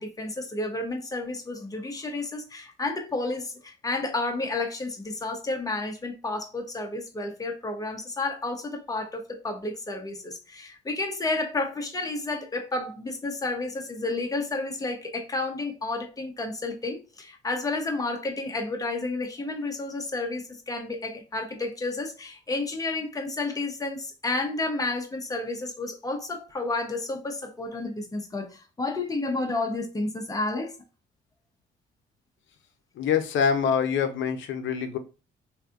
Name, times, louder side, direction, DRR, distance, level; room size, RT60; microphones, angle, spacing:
voice 1, 0.0-30.8, left 2 dB, 20° left, 0.8 m, -31 dB
voice 2, 33.0-35.0, left 7 dB, 70° left, 0.6 m, -25 dB
3.3 x 2.7 x 2.5 m
cardioid pair, 90°, 20 cm